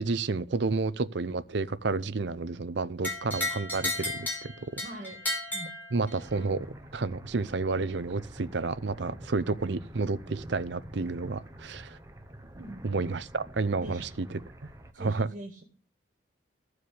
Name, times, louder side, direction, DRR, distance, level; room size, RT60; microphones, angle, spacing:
voice 1, 0.0-4.8 5.9-6.7 6.9-12.0 12.8-14.4 15.0-15.3, right 3 dB, 65° right, 0.6 m, -30 dB
sound 1, 3.0-6.4, left 1 dB, 10° left, 3.5 m, -34 dB
voice 2, 4.8-5.2 5.5-5.7 12.5-12.9 13.8-14.1 14.9-15.6, right 1 dB, 40° right, 1.9 m, -42 dB
sound 2, 6.2-14.9, right 1 dB, 15° right, 1.0 m, -47 dB
14.5 x 4.8 x 8.5 m
head